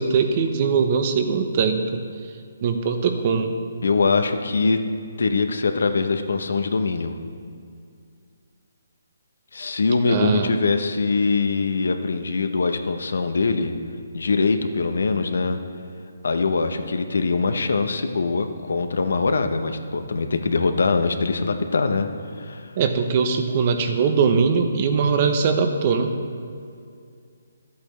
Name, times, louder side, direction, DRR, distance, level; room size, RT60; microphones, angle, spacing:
voice 1, 0.0-2.0 2.6-3.5 10.1-10.5 22.8-26.1, right 5 dB, 40° right, 6 dB, 0.8 m, -21 dB
voice 2, 3.8-4.9 5.2-7.2 9.5-13.7 14.1-15.6 16.2-22.1 22.3-22.7, left 4 dB, 70° left, 7 dB, 0.8 m, -22 dB
12.0 x 8.2 x 3.2 m, 2.3 s
hypercardioid pair, 150°, 0 cm